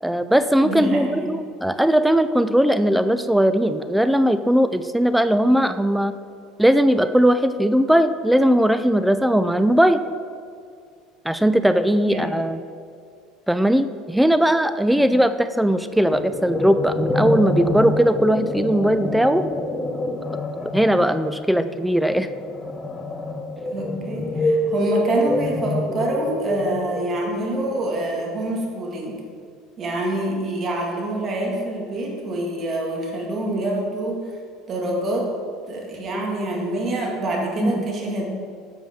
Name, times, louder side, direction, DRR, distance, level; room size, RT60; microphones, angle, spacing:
voice 1, 0.0-6.2 6.6-10.0 11.3-12.6 13.5-19.4 20.7-22.3 37.6-37.8, equal, 5° right, 11 dB, 0.3 m, -19 dB
voice 2, 0.6-1.3 12.1-12.3 14.9-15.0 23.7-29.2 29.8-34.2 34.7-35.3 35.7-38.2, right 1 dB, 35° right, -1 dB, 2.2 m, -26 dB
sound 1, 16.1-27.5, left 2 dB, 20° left, 0.8 m, -27 dB
10.5 x 6.9 x 3.8 m, 2.3 s
supercardioid pair, 115°, 0 cm